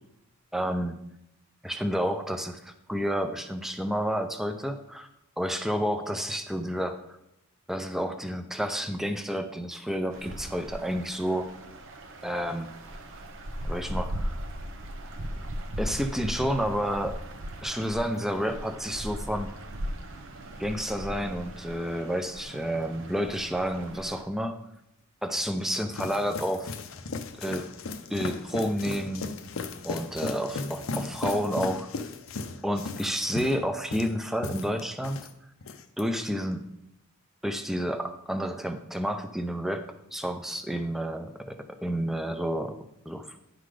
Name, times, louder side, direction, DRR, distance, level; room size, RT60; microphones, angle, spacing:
voice 1, 0.5-0.9 1.6-5.1 5.4-7.0 7.7-11.5 12.2-12.7 13.6-14.3 15.8-17.2 17.6-19.5 20.6-24.6 25.2-26.7 27.4-27.7 28.1-29.2 29.8-32.1 32.6-35.3 36.0-36.6 37.4-42.8 43.1-43.4, equal, ahead, 7 dB, 0.5 m, -30 dB
sound 1, 10.1-24.2, equal, 65° right, 0.9 m, -38 dB
sound 2, 25.4-35.3 35.6-36.0, left 3 dB, 65° left, 0.6 m, -36 dB
10.5 x 3.9 x 4.9 m, 0.82 s
head